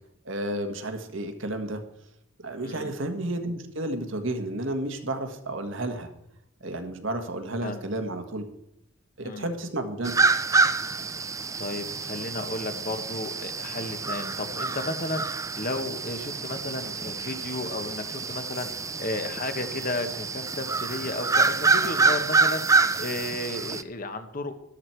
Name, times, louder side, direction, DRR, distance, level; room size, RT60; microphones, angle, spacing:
voice 1, 0.2-1.8 2.4-6.1 6.6-8.4 9.2-10.1, right 1 dB, 65° right, 6 dB, 1.7 m, -31 dB
sound 1, 10.0-23.8, right 4 dB, 15° right, 0.4 m, -27 dB
voice 2, 11.6-24.5, left 2 dB, 40° left, 8 dB, 1.3 m, -33 dB
13.0 x 13.0 x 4.6 m, 0.80 s
head